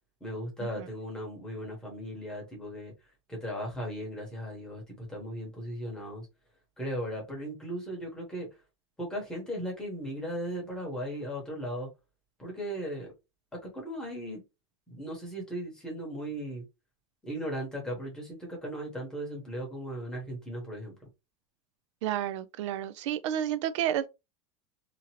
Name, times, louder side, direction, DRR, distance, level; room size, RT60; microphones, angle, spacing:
voice 1, 0.2-2.9 3.3-6.3 6.8-8.5 9.0-11.9 12.4-13.1 13.6-14.4 14.9-16.6 17.2-20.9, equal, 5° left, 1.0 m, -37 dB
voice 2, 22.0-24.1, right 11 dB, 75° right, 0.4 m, -30 dB
2.8 x 2.5 x 2.9 m
supercardioid pair, 180°, 15 cm